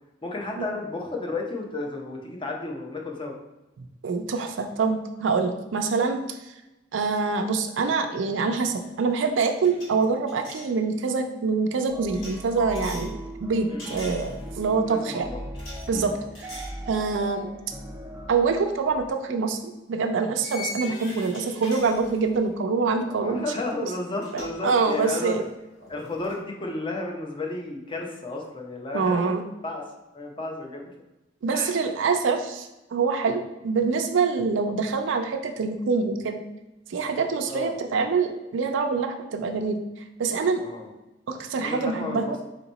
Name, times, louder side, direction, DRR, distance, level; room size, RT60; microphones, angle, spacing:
voice 1, 0.2-3.3 13.7-14.2 14.9-15.4 15.9-16.2 23.1-25.4 25.9-30.9 31.5-31.8 37.5-37.8 40.6-40.9 41.6-42.4, left 2 dB, 25° left, 1 dB, 0.7 m, -33 dB
voice 2, 4.0-6.4 6.9-15.3 15.9-16.5 16.9-17.5 18.3-19.6 19.9-23.5 24.3-25.4 28.9-29.4 31.4-36.4 36.9-39.8 40.2-40.6 41.3-42.4, right 4 dB, 85° right, 5 dB, 0.4 m, -25 dB
sound 1, 8.6-8.8 9.1-10.7 12.1-13.1 13.8-14.7 15.5-15.9 16.3-16.8 17.3-17.4 18.9-19.1 20.4-22.5 23.9-24.0 24.2-24.6 24.9-26.4, left 2 dB, 85° left, 1.4 m, -41 dB
sound 2, 11.9-19.1, right 1 dB, 10° right, 0.5 m, -39 dB
4.4 x 2.9 x 4.0 m, 0.99 s
head